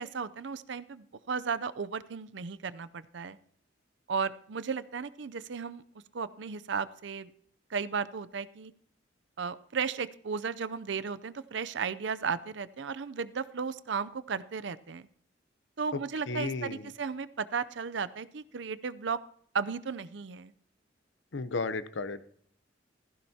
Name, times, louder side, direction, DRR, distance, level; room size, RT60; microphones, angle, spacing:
voice 1, 0.0-3.4 4.1-5.8 6.1-7.3 7.7-8.7 9.4-15.1 15.8-19.2 19.5-20.5, right 5 dB, 75° right, 14 dB, 0.6 m, -35 dB
voice 2, 16.3-16.9 21.3-22.2, left 3 dB, 80° left, 13 dB, 0.8 m, -33 dB
16.0 x 15.0 x 2.8 m, 0.62 s
head